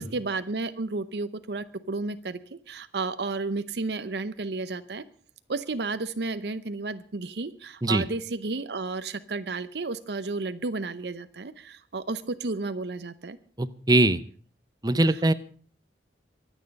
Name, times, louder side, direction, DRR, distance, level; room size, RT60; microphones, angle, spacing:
voice 1, 0.0-5.0 5.5-13.4, right 3 dB, 65° right, 12 dB, 0.7 m, -32 dB
voice 2, 13.6-14.2 14.8-15.3, right 2 dB, 20° right, 14 dB, 0.8 m, -21 dB
24.0 x 9.2 x 5.3 m, 0.43 s
head